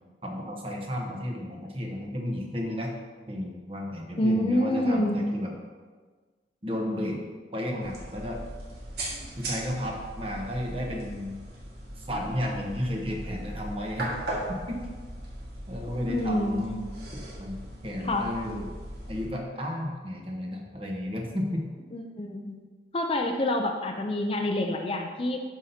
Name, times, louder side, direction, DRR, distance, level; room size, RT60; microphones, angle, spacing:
voice 1, 0.2-2.9 3.3-5.5 6.6-7.2 7.5-8.4 9.4-11.4 12.0-14.1 14.5-14.8 15.7-16.8 17.1-18.6 19.1-21.7, left 1 dB, 30° right, 0 dB, 1.0 m, -33 dB
voice 2, 4.2-5.2 9.1-9.3 16.1-16.6 18.0-18.3 21.9-22.6 22.9-25.4, left 1 dB, 30° left, 3 dB, 0.5 m, -27 dB
sound 1, 7.8-19.3, right 1 dB, 65° right, 1.7 m, -38 dB
10.5 x 5.7 x 2.8 m, 1.4 s
head